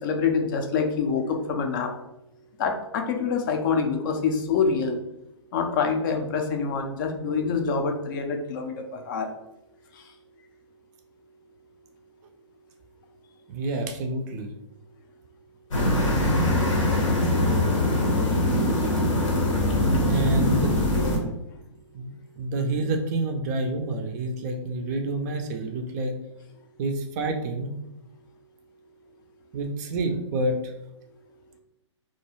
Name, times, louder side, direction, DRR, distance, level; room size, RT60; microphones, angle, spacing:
voice 1, 0.0-1.9 2.6-5.0 5.5-9.3, left 5 dB, 40° left, 4 dB, 0.4 m, -26 dB
voice 2, 13.5-14.5 20.1-20.7 21.0-21.3 21.9-26.1 26.8-27.7 29.5-30.7, right 2 dB, 35° right, 4 dB, 0.3 m, -28 dB
sound 1, 15.7-21.2, left 1 dB, 80° left, 0.8 m, -22 dB
2.4 x 2.2 x 2.9 m, 0.89 s
hypercardioid pair, 130°, 16 cm